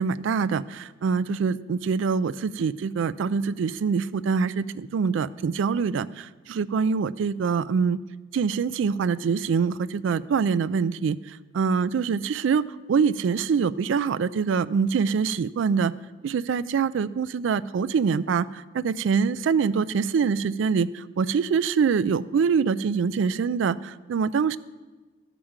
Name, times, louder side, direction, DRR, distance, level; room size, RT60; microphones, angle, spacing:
voice 1, 0.0-8.0 8.3-11.2 11.5-12.6 12.9-15.9 16.2-24.6, right 6 dB, 75° right, 17 dB, 0.3 m, -24 dB
12.0 x 5.0 x 7.2 m, 1.3 s
head